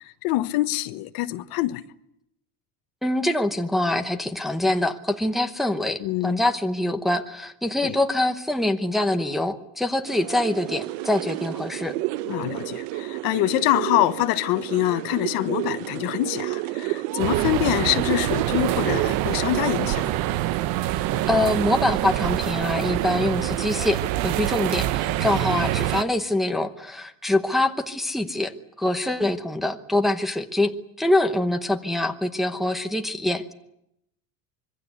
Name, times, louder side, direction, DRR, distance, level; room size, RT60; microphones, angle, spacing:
voice 1, 0.2-1.8 6.0-6.4 7.8-8.0 12.3-20.1, left 16 dB, 60° left, 1.2 m, -25 dB
voice 2, 3.0-11.9 20.9-28.5 28.8-33.5, left 1 dB, ahead, 1.0 m, -24 dB
sound 1, 10.0-20.1, right 18 dB, 90° right, 0.9 m, -31 dB
sound 2, 17.2-26.0, right 14 dB, 60° right, 1.0 m, -25 dB
25.5 x 23.0 x 8.2 m
cardioid pair, 180°, 40 cm